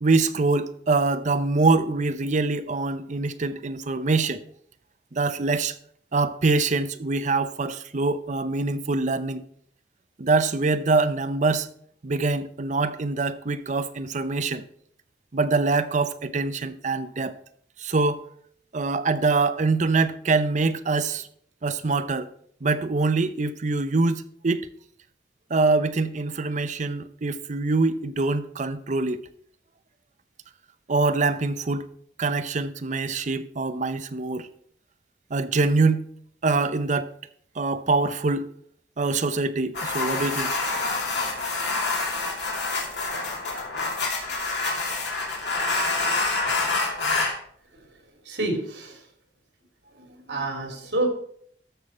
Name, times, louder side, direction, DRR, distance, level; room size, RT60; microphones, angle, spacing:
voice 1, 0.0-4.4 5.1-5.8 6.1-9.4 10.2-11.7 12.0-14.6 15.3-17.4 17.8-18.2 18.7-21.3 21.6-22.3 22.6-24.7 25.5-29.2 30.9-31.9 32.2-34.5 35.3-36.1 36.4-37.1 37.6-38.5 39.0-40.5, right 3 dB, 45° right, 0.6 m, -24 dB
sound 1, 39.7-47.3, left 3 dB, 75° left, 2.5 m, -27 dB
voice 2, 48.3-48.9 50.3-51.1, right 2 dB, 75° right, 3.0 m, -27 dB
13.5 x 6.3 x 4.3 m
head